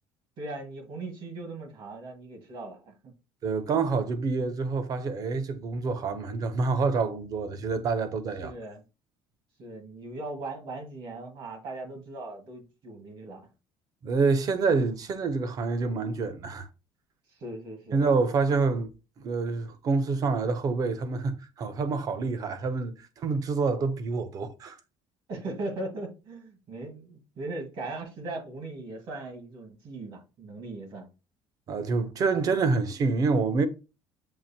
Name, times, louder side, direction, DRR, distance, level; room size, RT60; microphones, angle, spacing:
voice 1, 0.4-3.1 8.4-8.8 9.6-13.5 17.4-18.0 25.3-31.1, right 2 dB, 55° right, 1.5 m, -39 dB
voice 2, 3.4-8.5 14.0-16.7 17.9-18.9 19.2-24.8 31.7-33.7, right 4 dB, 40° right, 0.6 m, -27 dB
7.4 x 2.5 x 2.7 m
cardioid pair, 155°, 10 cm